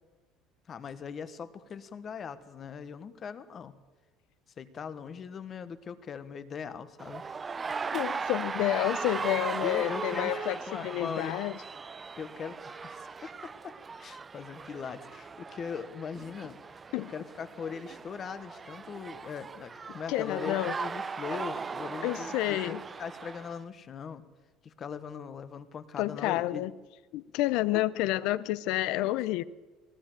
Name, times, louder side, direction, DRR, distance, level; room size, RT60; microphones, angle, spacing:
voice 1, 0.7-3.8 4.6-7.2 9.6-11.4 12.2-16.6 16.9-24.3 24.6-26.7 27.7-27.8 28.3-28.4 29.0-29.2, left 6 dB, 30° left, 1.2 m, -40 dB
sound 1, 7.0-23.6, right 5 dB, 20° right, 0.6 m, -38 dB
voice 2, 7.9-11.6 16.9-17.1 20.1-20.7 22.0-22.8 26.0-26.7 27.1-29.4, left 16 dB, 70° left, 0.7 m, -29 dB
19.5 x 18.5 x 7.6 m
cardioid pair, 150°, 0 cm